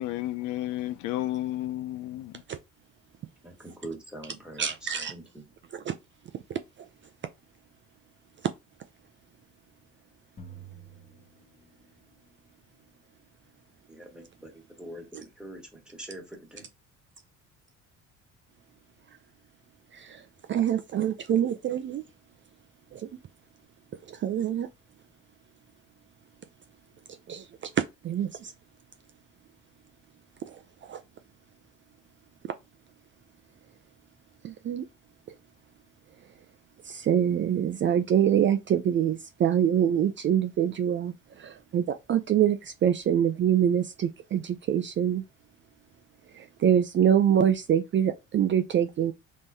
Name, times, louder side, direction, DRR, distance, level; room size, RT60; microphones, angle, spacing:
voice 1, 0.0-2.4, left 14 dB, 75° left, 0.5 m, -32 dB
voice 2, 3.4-5.5 13.9-16.7, right 1 dB, 5° right, 1.6 m, -44 dB
voice 3, 4.6-5.1 5.7-5.9 6.5-6.6 19.9-22.0 22.9-23.1 24.1-24.7 27.3-28.5 30.5-31.0 34.4-34.9 36.8-45.2 46.3-49.1, right 9 dB, 40° right, 0.4 m, -25 dB
sound 1, 10.4-12.2, right 4 dB, 25° left, 1.1 m, -48 dB
3.6 x 3.1 x 2.7 m
cardioid pair, 95°, 31 cm